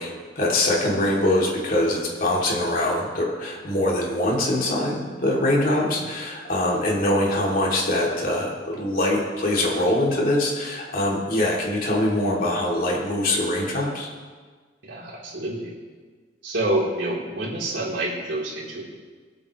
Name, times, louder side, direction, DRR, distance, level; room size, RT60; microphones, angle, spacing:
voice 1, 0.0-14.1, left 1 dB, 50° left, -3 dB, 3.2 m, -23 dB
voice 2, 14.8-15.7 16.4-18.8, right 1 dB, 75° right, -5 dB, 4.1 m, -28 dB
23.5 x 8.7 x 3.3 m, 1.5 s
head